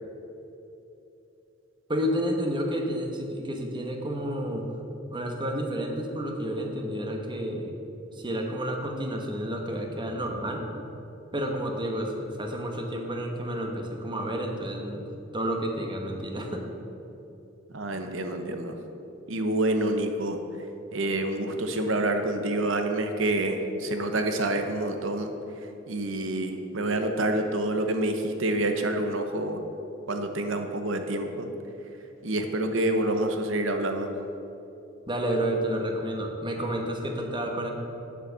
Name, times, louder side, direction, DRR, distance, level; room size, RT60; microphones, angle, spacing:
voice 1, 1.9-4.7 5.1-7.8 8.1-10.7 11.3-15.1 15.3-16.7 35.1-37.7, equal, 25° right, 2 dB, 1.2 m, -30 dB
voice 2, 17.7-18.8 19.3-20.4 20.9-25.3 25.9-29.6 30.1-31.5 32.2-34.1, right 1 dB, 70° right, 6 dB, 1.0 m, -27 dB
8.9 x 7.4 x 6.8 m, 2.9 s
head